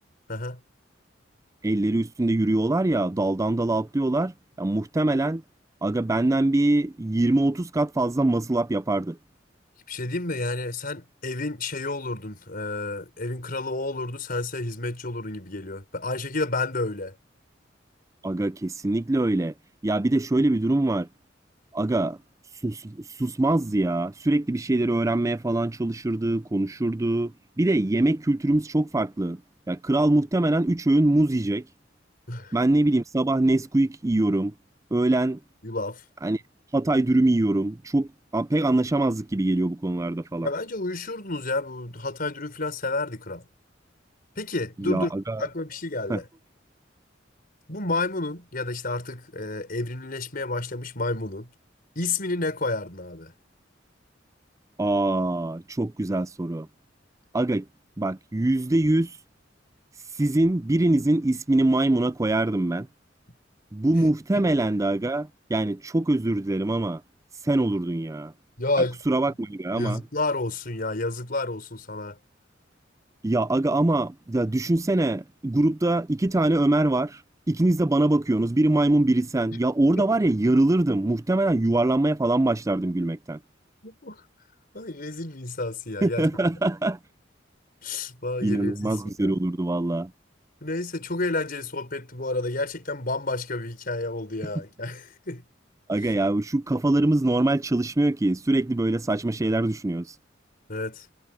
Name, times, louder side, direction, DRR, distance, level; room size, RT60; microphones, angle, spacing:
voice 1, 0.3-0.6 9.9-17.1 32.3-32.6 35.6-36.0 40.4-43.4 44.4-46.3 47.7-51.5 51.9-53.3 64.3-64.5 68.6-69.0 69.3-69.4 69.8-72.2 80.0-80.1 83.8-84.2 84.7-86.3 87.8-89.4 90.6-95.4 100.7-101.1, left 2 dB, 50° left, 5.1 m, -30 dB
voice 2, 1.6-4.3 4.6-5.4 5.8-9.2 18.2-19.5 19.8-21.1 21.7-22.2 22.6-27.3 27.6-29.4 29.7-31.7 32.5-34.5 34.9-35.4 36.2-36.4 36.7-40.5 44.8-45.4 46.1-46.2 54.8-56.7 57.3-57.7 58.0-59.1 60.2-62.9 63.7-67.0 67.4-68.3 69.1-70.0 73.2-77.2 77.5-83.4 86.0-87.0 88.4-90.1 95.9-100.1, right 2 dB, 15° right, 0.5 m, -23 dB
head